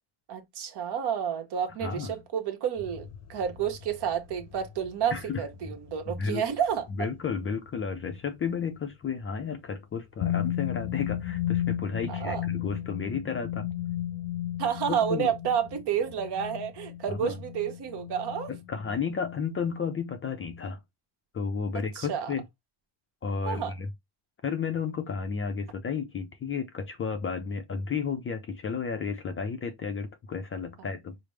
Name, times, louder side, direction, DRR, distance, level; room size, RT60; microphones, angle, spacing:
voice 1, 0.3-7.1 12.1-12.5 14.6-18.5 21.9-22.3 23.5-23.7, right 8 dB, 55° right, 1.1 m, -30 dB
voice 2, 1.8-2.2 5.1-5.4 6.1-6.4 6.9-13.7 14.9-15.3 17.1-17.4 18.5-20.8 21.3-22.4 23.2-23.9 24.4-31.2, left 6 dB, 30° left, 0.4 m, -32 dB
sound 1, 2.8-8.0 10.2-19.7, left 12 dB, 80° left, 0.7 m, -35 dB
5.0 x 2.0 x 3.1 m
cardioid pair, 145°, 47 cm